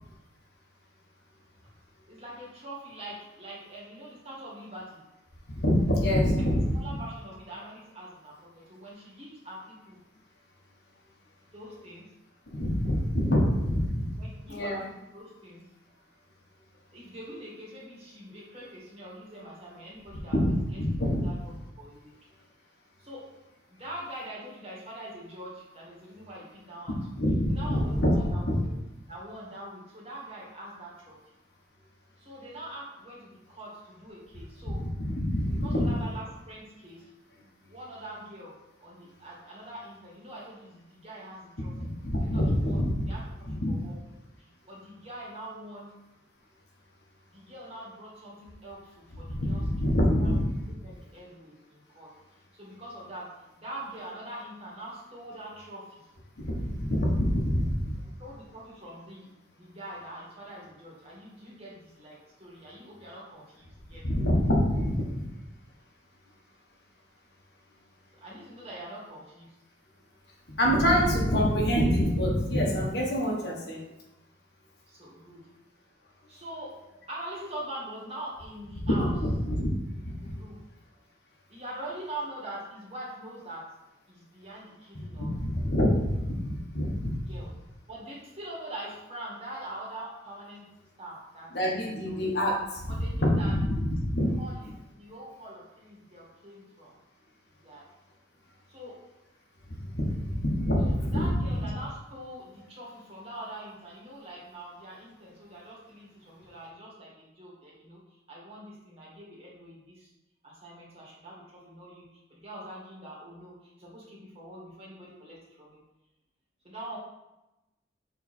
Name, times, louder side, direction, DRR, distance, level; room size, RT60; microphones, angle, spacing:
voice 1, 2.1-5.0 6.7-10.0 11.5-12.1 14.2-14.9 15.1-15.7 16.9-20.8 21.2-21.3 21.8-22.1 23.0-23.3 23.7-27.0 27.5-28.7 29.1-31.2 32.2-34.8 35.6-37.1 37.6-38.5 38.8-41.7 42.2-43.2 43.7-44.0 44.7-46.0 47.3-49.9 50.2-50.3 50.8-52.1 52.5-53.3 53.6-56.0 58.2-64.1 68.1-69.6 74.9-75.5 76.3-76.7 77.1-79.1 80.1-80.6 81.5-83.6 84.1-85.3 87.3-87.5 87.9-90.7 91.0-91.5 92.0-92.2 92.9-93.5 94.1-97.0 97.6-97.8 98.7-99.0 100.7-110.1 110.4-115.8 116.6-117.0, right 1 dB, 35° right, -6 dB, 2.2 m, -43 dB
voice 2, 5.6-6.8 12.6-14.2 14.5-14.8 20.3-21.2 27.2-28.6 34.8-35.9 41.7-43.1 43.5-43.7 49.3-50.8 56.4-58.0 64.0-65.2 70.6-73.8 78.8-80.3 85.1-87.2 91.5-92.9 93.2-94.3 99.7-101.7, equal, 60° left, -2 dB, 1.4 m, -26 dB
7.2 x 3.6 x 4.4 m, 0.96 s
head